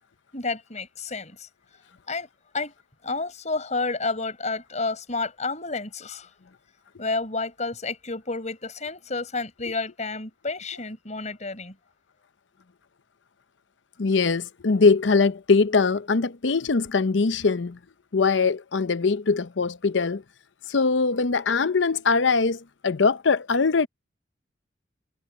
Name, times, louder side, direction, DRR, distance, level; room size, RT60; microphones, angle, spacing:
voice 1, 0.3-1.4 2.1-2.3 2.5-2.7 3.0-6.3 7.0-11.7, left 3 dB, 40° left, 5.1 m, -30 dB
voice 2, 14.0-17.8 18.1-20.2 20.7-23.9, left 4 dB, 80° left, 0.7 m, -22 dB
head